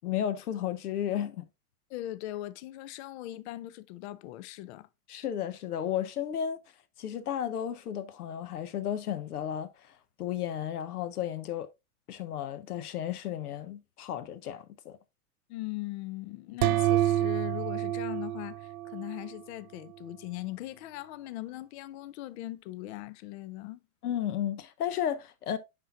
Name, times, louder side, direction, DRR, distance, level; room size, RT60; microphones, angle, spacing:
voice 1, 0.0-1.4 5.1-6.6 7.0-9.7 10.2-11.7 12.1-15.0 24.0-25.6, left 10 dB, 75° left, 1.1 m, -33 dB
voice 2, 1.9-4.9 15.5-23.8, left 16 dB, 45° left, 0.7 m, -40 dB
sound 1, 16.6-19.4, right 12 dB, 70° right, 0.5 m, -28 dB
9.9 x 4.5 x 2.6 m
hypercardioid pair, 120°, 46 cm